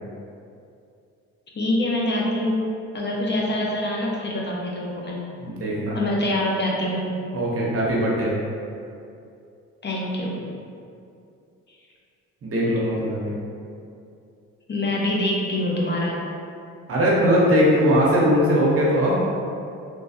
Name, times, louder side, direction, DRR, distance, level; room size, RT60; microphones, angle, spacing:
voice 1, 1.5-2.7 2.9-5.2 5.9-7.1 9.8-10.5 14.7-16.3, left 1 dB, 35° left, -3 dB, 0.7 m, -25 dB
voice 2, 5.4-6.0 7.3-8.3 12.4-13.3 16.9-19.1, equal, 50° right, -5 dB, 1.0 m, -20 dB
3.3 x 3.1 x 2.8 m, 2.5 s
cardioid pair, 90°, 30 cm